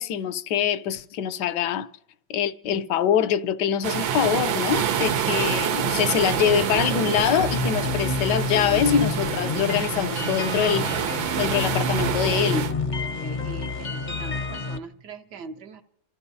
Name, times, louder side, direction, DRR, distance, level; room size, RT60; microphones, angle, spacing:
voice 1, 0.0-1.9 2.3-12.7, left 9 dB, 70° left, 1.2 m, -24 dB
sound 1, 3.8-12.7, right 8 dB, 85° right, 1.6 m, -27 dB
sound 2, 7.4-14.8, left 4 dB, 40° left, 0.7 m, -29 dB
voice 2, 13.0-15.8, right 4 dB, 65° right, 1.3 m, -41 dB
28.5 x 14.5 x 2.7 m
omnidirectional pair, 2.0 m